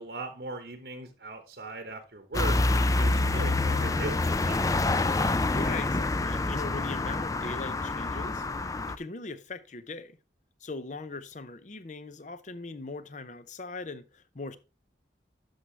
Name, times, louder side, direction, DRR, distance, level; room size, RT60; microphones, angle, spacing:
voice 1, 0.0-4.6, right 2 dB, 65° right, 1.0 m, -39 dB
sound 1, 2.3-9.0, left 2 dB, 20° left, 0.4 m, -27 dB
voice 2, 5.5-8.5 8.9-10.2 10.6-14.6, left 3 dB, 45° left, 0.7 m, -40 dB
11.5 x 6.2 x 3.3 m
head